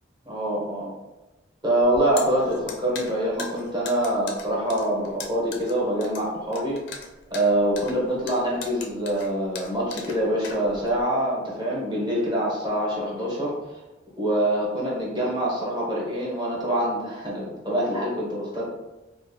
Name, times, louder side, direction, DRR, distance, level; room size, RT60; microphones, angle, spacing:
voice 1, 0.3-0.9 1.6-6.8 7.3-13.5 14.2-18.6, right 1 dB, 25° right, -5 dB, 0.7 m, -25 dB
sound 1, 1.8-11.0, left 5 dB, 65° left, 0.4 m, -39 dB
2.5 x 2.1 x 2.6 m, 1.1 s
head